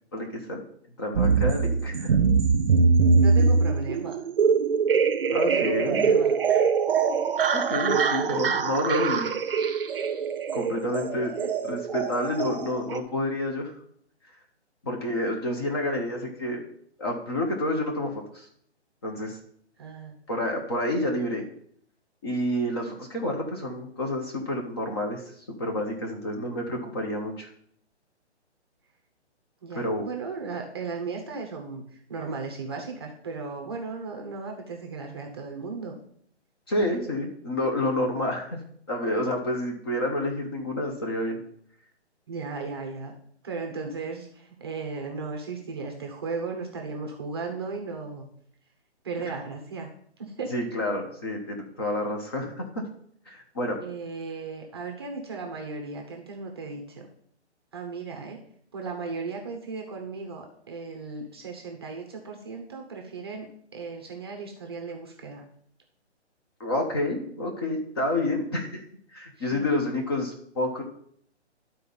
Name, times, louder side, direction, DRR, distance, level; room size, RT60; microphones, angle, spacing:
voice 1, 0.1-0.6 1.0-2.2 5.3-6.2 7.5-9.3 10.5-11.3 11.6-13.7 14.8-16.6 17.0-18.5 19.0-19.4 20.3-21.4 22.2-25.2 25.5-27.5 29.7-30.0 36.7-38.6 38.9-41.4 50.5-52.8 53.3-53.8 66.6-68.8 69.1-70.8, left 1 dB, 20° left, 2 dB, 0.9 m, -29 dB
sound 1, 1.2-13.0, right 5 dB, 55° right, 0.8 m, -23 dB
voice 2, 3.1-4.2 5.4-6.3 11.4-11.5 19.8-20.2 29.6-36.0 36.9-37.0 42.3-43.1 43.4-48.3 49.0-49.9 50.2-50.5 53.8-57.1 57.7-58.4 58.7-65.4 69.4-69.7, right 4 dB, 20° right, 2 dB, 0.8 m, -36 dB
11.5 x 4.2 x 5.4 m, 0.65 s
hypercardioid pair, 165°, 35 cm